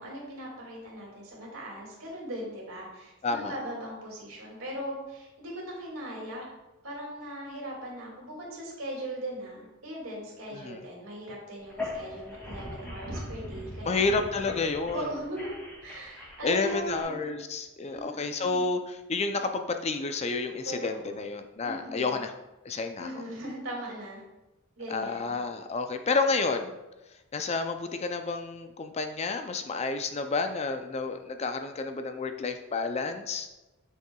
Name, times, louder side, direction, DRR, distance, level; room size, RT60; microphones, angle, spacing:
voice 1, 0.0-6.5 6.8-14.0 14.9-15.5 15.8-17.2 17.9-18.6 20.6-21.2 21.6-22.2 23.0-24.2 24.8-25.3, right 1 dB, 75° right, -2 dB, 2.3 m, -39 dB
voice 2, 3.2-3.5 10.5-10.8 13.9-15.0 16.4-22.3 22.6-23.1 24.9-26.8 27.3-33.5, left 4 dB, 30° left, 7 dB, 0.4 m, -30 dB
sound 1, 11.6-17.0, left 1 dB, 5° left, 2.2 m, -40 dB
7.7 x 6.5 x 2.3 m, 1.0 s
head